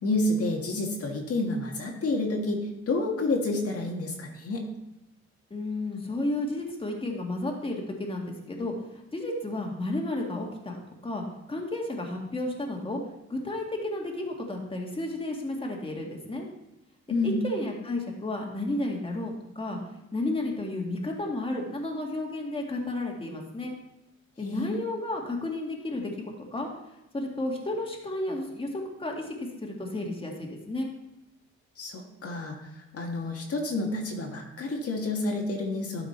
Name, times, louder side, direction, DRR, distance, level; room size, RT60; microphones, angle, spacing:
voice 1, 0.0-4.7 17.1-17.4 24.4-24.7 31.8-36.1, left 2 dB, 50° left, 1 dB, 1.7 m, -29 dB
voice 2, 5.5-10.8 11.0-13.0 13.3-16.5 17.2-19.8 20.1-23.8 24.4-26.7 27.1-30.9, left 2 dB, 20° left, 0 dB, 1.9 m, -32 dB
12.0 x 5.0 x 4.3 m, 0.91 s
cardioid pair, 90°, 30 cm